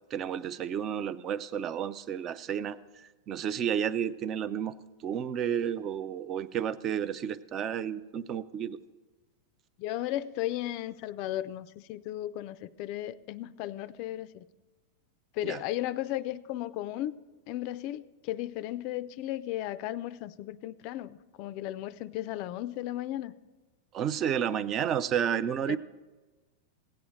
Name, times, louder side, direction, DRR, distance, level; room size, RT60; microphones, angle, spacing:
voice 1, 0.1-2.8 3.3-4.7 5.0-8.8 15.4-15.6 23.9-25.8, right 8 dB, 30° right, 16 dB, 0.4 m, -31 dB
voice 2, 9.8-14.4 15.3-17.1 17.5-23.3 25.7-25.8, left 14 dB, 45° left, 15 dB, 0.4 m, -35 dB
16.5 x 8.6 x 3.2 m, 1.2 s
supercardioid pair, 150°, 0 cm